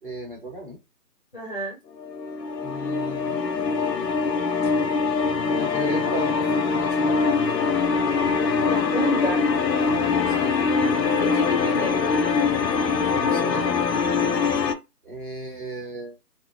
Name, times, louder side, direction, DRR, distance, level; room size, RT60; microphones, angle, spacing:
voice 1, 0.0-0.8 2.6-3.5 5.6-7.5 10.3-10.6 13.1-13.7 15.0-16.2, right 1 dB, 30° right, -1 dB, 0.9 m, -36 dB
voice 2, 1.3-1.8 8.7-9.4 11.2-12.1, left 1 dB, 35° left, -1 dB, 0.5 m, -29 dB
sound 1, 2.0-14.7, left 5 dB, 80° left, 0.6 m, -23 dB
2.7 x 2.1 x 2.4 m, 0.24 s
figure-of-eight pair, 155°, 49 cm